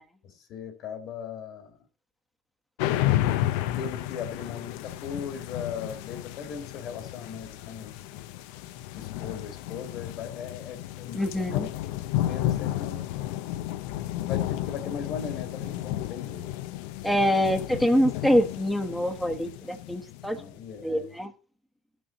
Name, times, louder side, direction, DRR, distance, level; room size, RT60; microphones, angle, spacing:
voice 1, 0.0-1.8 3.7-8.2 8.9-11.7 12.3-13.1 14.2-16.5 17.3-17.5 18.1-18.2 20.3-21.2, left 7 dB, 60° left, 1.9 m, -39 dB
sound 1, 2.8-20.6, left 14 dB, 75° left, 0.6 m, -32 dB
voice 2, 11.1-11.7 17.0-20.4 20.8-21.3, equal, ahead, 1.1 m, -25 dB
14.0 x 6.3 x 4.0 m
supercardioid pair, 100°, 0 cm